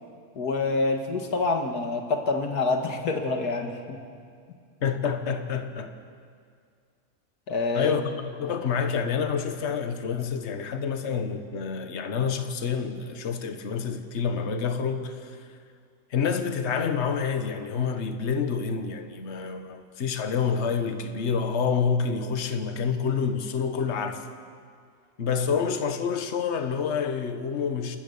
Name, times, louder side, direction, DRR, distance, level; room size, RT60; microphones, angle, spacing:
voice 1, 0.4-4.0 7.5-7.9, left 3 dB, 85° left, 2.4 m, -27 dB
voice 2, 4.8-5.9 7.7-15.4 16.1-24.2 25.2-28.0, left 6 dB, 50° left, 1.4 m, -28 dB
28.5 x 14.0 x 7.0 m
omnidirectional pair, 1.6 m